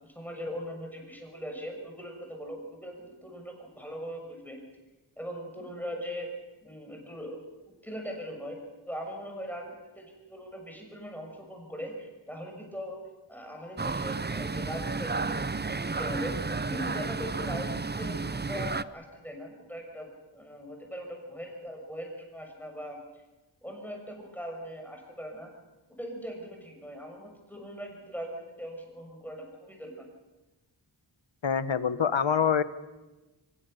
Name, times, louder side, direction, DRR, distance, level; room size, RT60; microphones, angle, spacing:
voice 1, 0.0-4.6 5.2-6.3 6.6-7.4 7.7-8.6 8.9-13.0 13.3-23.0 23.6-25.5 25.9-30.1, equal, 5° left, 1 dB, 6.5 m, -40 dB
sound 1, 13.8-18.8, right 4 dB, 25° right, 0.7 m, -32 dB
voice 2, 31.4-32.6, left 7 dB, 85° left, 13 dB, 1.2 m, -25 dB
24.5 x 21.5 x 6.8 m, 1.1 s
wide cardioid pair, 65°, 44 cm